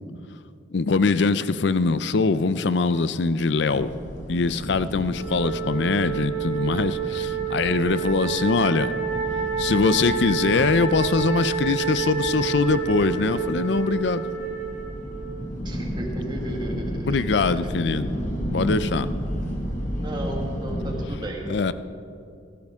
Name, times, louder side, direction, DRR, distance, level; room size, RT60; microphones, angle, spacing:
voice 1, 0.7-3.9 4.3-8.9 9.6-14.2 17.0-18.1 18.5-19.1 21.5-21.7, left 4 dB, 60° left, 14 dB, 0.5 m, -22 dB
sound 1, 3.7-21.0, equal, 40° left, 1.7 m, -33 dB
Wind instrument woodwind instrument, 5.1-15.5, right 7 dB, 80° left, 3.7 m, -29 dB
voice 2, 15.6-18.0 19.9-21.7, right 1 dB, 25° right, 0 dB, 1.8 m, -35 dB
16.5 x 15.0 x 3.6 m, 2.5 s
head